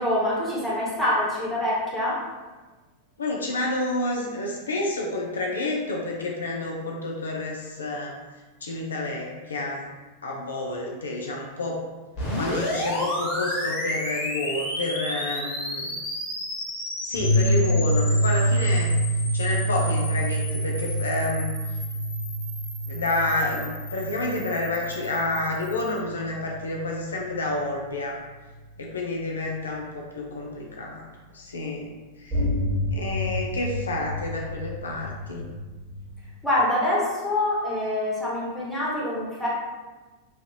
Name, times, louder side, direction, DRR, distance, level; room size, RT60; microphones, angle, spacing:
voice 1, 0.0-2.2 36.4-39.5, left 1 dB, 5° left, -8 dB, 1.1 m, -25 dB
voice 2, 3.2-8.2 8.6-9.9 10.2-11.8 12.4-15.9 17.0-19.0 19.3-21.5 22.9-28.2 28.8-31.0 31.3-31.9 32.2-32.4 32.9-35.5, left 2 dB, 70° left, 0 dB, 0.4 m, -29 dB
sound 1, 12.1-26.0, left 1 dB, 40° left, 1.3 m, -33 dB
sound 2, 17.1-26.4 27.4-27.5 32.3-36.2, equal, 20° right, 1.2 m, -27 dB
3.2 x 2.4 x 2.7 m, 1.3 s
figure-of-eight pair, 90°, 0 cm